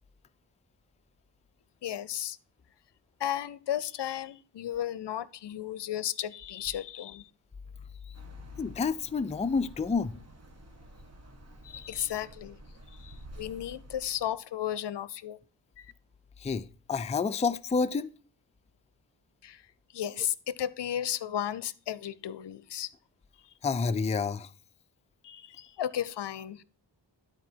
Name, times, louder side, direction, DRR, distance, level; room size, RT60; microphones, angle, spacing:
voice 1, 1.8-2.4 3.2-7.3 11.6-12.6 13.0-15.4 15.8-15.9 19.4-19.6 19.9-22.9 25.2-26.6, left 11 dB, 70° left, 0.6 m, -34 dB
sound 1, 8.1-14.4, right 1 dB, 35° right, 1.5 m, -50 dB
voice 2, 8.6-10.2 16.4-18.1 23.6-24.5, left 5 dB, 15° left, 0.4 m, -29 dB
11.5 x 4.4 x 4.4 m
wide cardioid pair, 90°, 43 cm